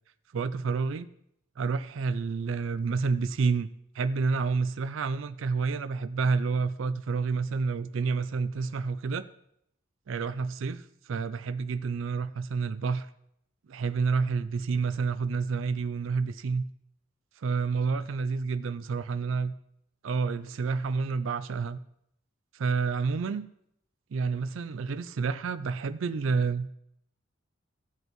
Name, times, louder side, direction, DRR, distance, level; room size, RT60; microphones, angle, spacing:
voice 1, 0.3-1.1 1.6-3.7 3.9-9.3 10.1-13.1 13.7-16.6 17.4-19.5 20.0-21.8 22.5-23.5 24.1-26.7, right 4 dB, 70° right, 12 dB, 0.4 m, -29 dB
16.5 x 7.9 x 3.1 m, 0.75 s
head